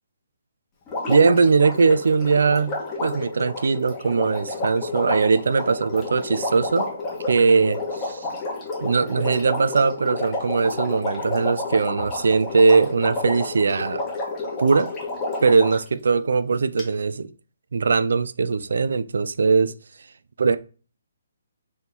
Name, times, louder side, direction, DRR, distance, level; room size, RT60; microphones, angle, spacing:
Water, 0.9-15.9 16.8-16.9, left 2 dB, 15° left, 1.2 m, -30 dB
voice 1, 1.1-6.9 7.3-8.3 8.8-14.0 14.6-14.9 15.4-17.3 17.7-19.7 20.4-20.6, right 4 dB, 75° right, 0.3 m, -20 dB
3.6 x 3.0 x 4.1 m
hypercardioid pair, 160°, 0 cm